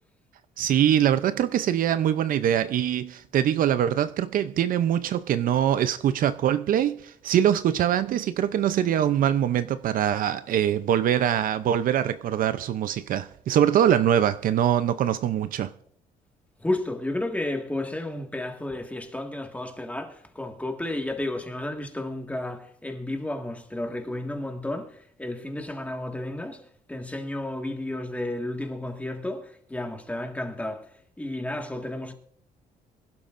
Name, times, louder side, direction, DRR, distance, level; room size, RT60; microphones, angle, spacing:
voice 1, 0.6-15.7, right 10 dB, 60° right, 0.6 m, -23 dB
voice 2, 16.6-32.1, left 1 dB, 10° left, 1.8 m, -32 dB
24.0 x 11.5 x 2.6 m
cardioid pair, 110°, 16 cm